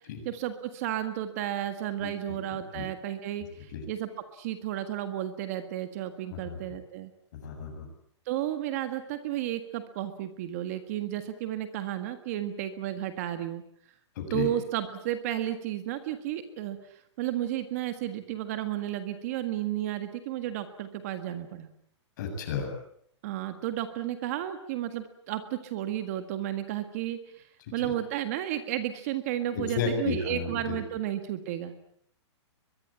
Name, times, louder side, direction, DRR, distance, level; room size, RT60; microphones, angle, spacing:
voice 1, 0.2-7.1 8.2-13.6 14.3-21.7 23.2-27.5 27.7-31.7, right 12 dB, 30° right, 9 dB, 1.7 m, -33 dB
voice 2, 2.0-2.8 3.7-3.8 6.3-6.6 7.3-7.9 14.2-14.5 22.2-22.7 27.7-27.9 29.5-30.8, left 6 dB, 40° left, 5 dB, 7.5 m, -33 dB
23.0 x 22.5 x 8.8 m, 0.68 s
hypercardioid pair, 175°, 15 cm